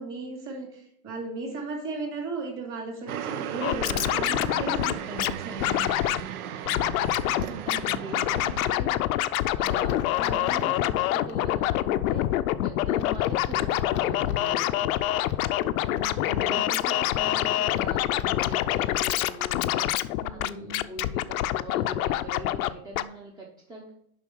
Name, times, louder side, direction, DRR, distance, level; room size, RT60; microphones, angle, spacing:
voice 1, 0.0-5.7 10.1-10.5 15.9-16.6 16.9-17.0 20.2-20.8, right 3 dB, 30° right, 1 dB, 2.8 m, -36 dB
sound 1, 3.1-8.8, right 9 dB, 70° right, 0.8 m, -36 dB
Scratching (performance technique), 3.6-5.3 5.6-6.2 6.6-7.4 7.7-22.7 22.9-23.0, left 14 dB, 70° left, 0.6 m, -26 dB
voice 2, 7.2-14.6 16.2-20.5 20.9-23.9, right 2 dB, 10° right, -2 dB, 0.7 m, -42 dB
sound 2, 9.6-19.5, left 9 dB, 25° left, 0.6 m, -39 dB
6.9 x 5.6 x 4.6 m, 0.72 s
supercardioid pair, 145°, 44 cm